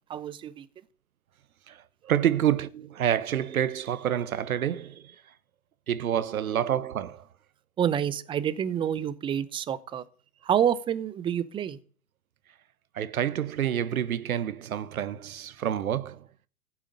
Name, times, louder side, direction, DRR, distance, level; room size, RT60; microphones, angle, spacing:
voice 1, 0.1-0.7 7.8-10.0 10.4-11.8, right 9 dB, 10° right, 0.6 m, -28 dB
voice 2, 1.7-5.1 5.9-7.3 12.9-16.2, right 10 dB, 65° right, 1.2 m, -28 dB
15.5 x 8.8 x 7.7 m
hypercardioid pair, 115°, 45 cm